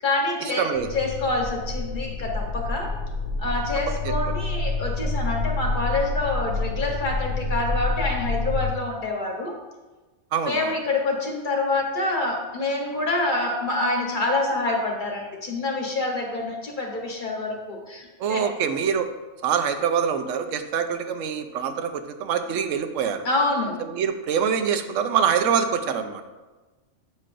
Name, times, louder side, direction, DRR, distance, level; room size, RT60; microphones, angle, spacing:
voice 1, 0.0-2.9 3.4-9.5 10.4-18.4 23.2-23.8, left 2 dB, 45° left, 0 dB, 1.0 m, -26 dB
voice 2, 0.6-0.9 4.0-4.1 10.3-10.7 18.2-19.1 19.4-23.3 23.9-26.2, right 7 dB, 85° right, 8 dB, 1.0 m, -25 dB
sound 1, 0.7-8.7, left 3 dB, 75° left, 0.9 m, -28 dB
8.2 x 5.3 x 2.5 m, 1.2 s
omnidirectional pair, 1.3 m